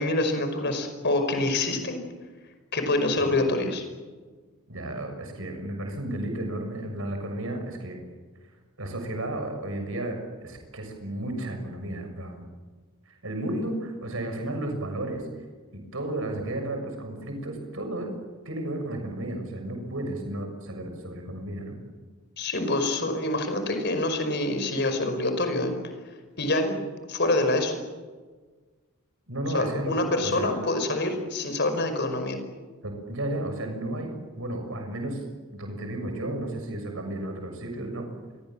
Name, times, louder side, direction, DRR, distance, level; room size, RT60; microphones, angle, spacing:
voice 1, 0.0-2.0 2.7-3.8 22.4-25.8 26.4-26.8 27.1-27.8 29.5-32.4, left 2 dB, 50° left, 7 dB, 5.4 m, -26 dB
voice 2, 4.7-8.0 8.8-12.5 13.1-15.4 15.7-18.1 18.4-21.7 29.3-30.5 32.8-35.2 35.5-38.1, right 1 dB, 70° right, 4 dB, 6.7 m, -33 dB
28.5 x 23.5 x 7.6 m, 1.4 s
head